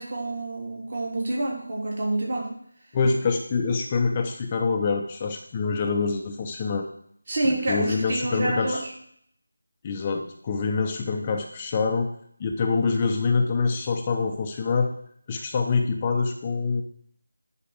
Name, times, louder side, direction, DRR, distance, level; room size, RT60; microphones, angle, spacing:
voice 1, 0.0-2.5 7.3-8.9, right 2 dB, 45° right, -3 dB, 3.2 m, -28 dB
voice 2, 2.9-6.9 7.7-8.8 9.8-12.1 12.4-14.9 15.3-16.8, left 4 dB, 20° left, 3 dB, 0.6 m, -25 dB
10.0 x 4.4 x 6.4 m, 0.65 s
figure-of-eight pair, 165°, 0 cm